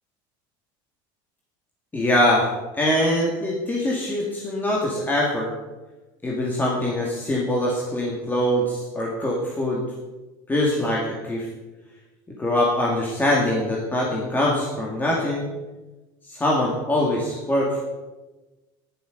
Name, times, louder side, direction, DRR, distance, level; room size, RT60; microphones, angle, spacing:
voice 1, 1.9-2.5 2.7-5.5 6.2-9.8 10.5-11.5 12.4-15.5 16.3-17.8, left 1 dB, 15° left, -3 dB, 2.3 m, -23 dB
11.0 x 10.5 x 5.2 m, 1.2 s
supercardioid pair, 120°, 11 cm